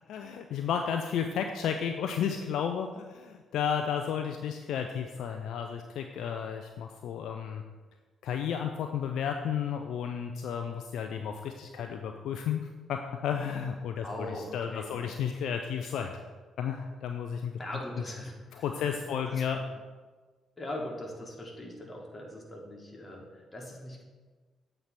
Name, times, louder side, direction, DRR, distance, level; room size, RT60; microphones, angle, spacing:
voice 1, 0.1-7.6 8.2-14.3 14.5-16.2 16.6-17.5 18.6-19.6, left 7 dB, 65° left, 5 dB, 0.4 m, -33 dB
voice 2, 14.0-15.1 17.6-19.7 20.6-24.0, left 1 dB, 25° left, -1 dB, 1.9 m, -41 dB
7.8 x 3.3 x 5.8 m, 1.4 s
figure-of-eight pair, 40°, 0 cm